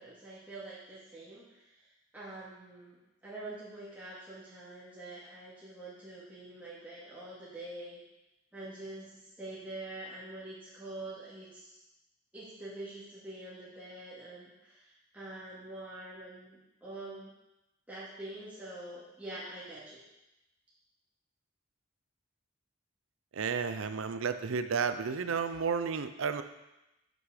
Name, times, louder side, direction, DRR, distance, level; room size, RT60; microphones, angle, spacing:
voice 1, 0.0-1.4 2.1-3.0 3.2-8.0 8.5-11.8 12.3-17.3 17.9-20.0, right 2 dB, 10° right, -10 dB, 2.0 m, -45 dB
voice 2, 23.3-26.4, right 5 dB, 80° right, 10 dB, 0.5 m, -32 dB
8.0 x 6.1 x 4.9 m, 0.94 s
head